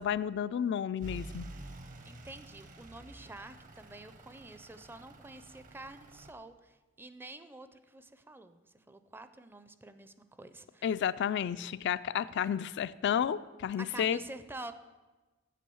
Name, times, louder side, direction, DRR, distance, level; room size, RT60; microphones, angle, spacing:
voice 1, 0.0-1.5 10.8-14.2, left 8 dB, 60° left, 14 dB, 0.3 m, -31 dB
Truck / Idling, 1.0-6.3, right 2 dB, 40° right, 0.8 m, -49 dB
voice 2, 2.0-11.0 13.8-14.7, right 2 dB, 10° right, 11 dB, 0.4 m, -48 dB
8.4 x 8.0 x 6.9 m, 1.2 s
head